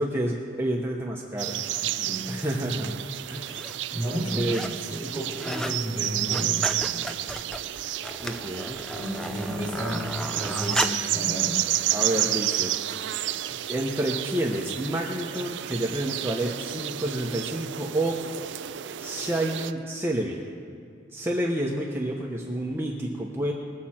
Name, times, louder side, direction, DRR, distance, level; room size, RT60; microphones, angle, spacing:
voice 1, 0.0-1.6 2.3-3.0 3.3-3.6 4.4-4.6 8.2-8.8 11.9-12.7 13.5-18.2 19.0-20.4 21.1-23.5, right 1 dB, 15° right, -2 dB, 0.9 m, -29 dB
sound 1, 1.4-19.7, right 13 dB, 75° right, 0.4 m, -31 dB
voice 2, 1.8-2.3 3.9-4.5 4.9-7.0 8.9-11.6, equal, 30° left, -5 dB, 3.2 m, -32 dB
sound 2, 2.5-2.6 3.3-3.8 4.1-4.8 5.1-5.8 6.1-11.1 11.8-11.9, equal, 5° left, 0.5 m, -34 dB
21.0 x 7.4 x 4.3 m, 2.4 s
head